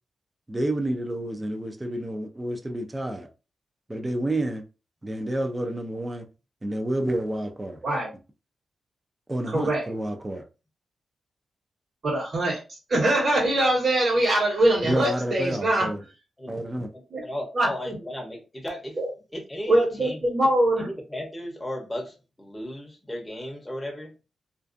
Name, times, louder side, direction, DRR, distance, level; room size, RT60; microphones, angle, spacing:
voice 1, 0.5-3.3 3.9-4.6 5.0-6.3 6.6-7.8 9.3-10.4 14.8-16.0 16.5-16.9, right 1 dB, 20° right, 0.5 m, -29 dB
voice 2, 9.5-9.9 12.0-15.9 17.1-17.3 17.5-18.0 19.0-19.1 19.7-20.9, right 1 dB, 50° right, 1.2 m, -23 dB
voice 3, 16.9-19.0 19.3-20.2 20.8-24.1, equal, 10° left, 0.8 m, -35 dB
2.5 x 2.3 x 2.5 m
cardioid pair, 80°, 0 cm